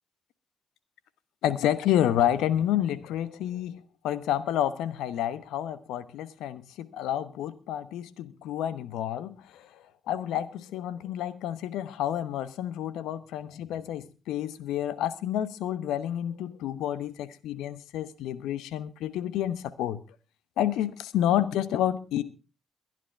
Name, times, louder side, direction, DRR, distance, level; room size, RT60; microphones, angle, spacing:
voice 1, 1.4-20.0 20.6-22.2, left 11 dB, 75° left, 0.9 m, -29 dB
22.5 x 10.5 x 3.3 m
hypercardioid pair, 40°, 0 cm